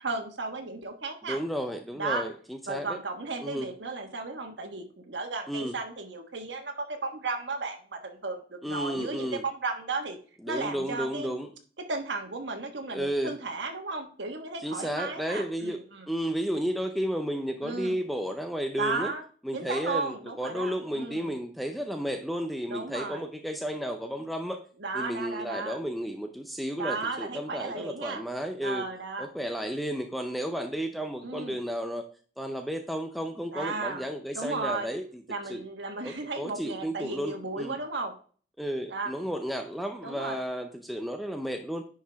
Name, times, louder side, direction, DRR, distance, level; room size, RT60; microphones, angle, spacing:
voice 1, 0.0-1.4 1.9-2.2 2.7-10.2 10.5-11.4 11.9-16.1 17.6-17.9 18.8-19.2 19.5-21.3 22.7-23.3 24.8-25.8 26.8-28.2 28.6-29.3 31.2-31.6 33.5-34.1 34.3-34.9 35.3-38.1 38.9-39.1 40.0-40.4, right 3 dB, 80° right, 4 dB, 1.4 m, -34 dB
voice 2, 1.3-3.0 3.4-3.7 5.5-5.7 8.6-9.4 10.4-11.5 12.9-13.4 14.6-19.1 19.4-24.6 24.9-28.8 29.2-32.0 32.4-35.6 36.0-37.7 38.6-41.9, equal, ahead, 5 dB, 0.5 m, -33 dB
10.0 x 4.8 x 3.5 m, 0.43 s
head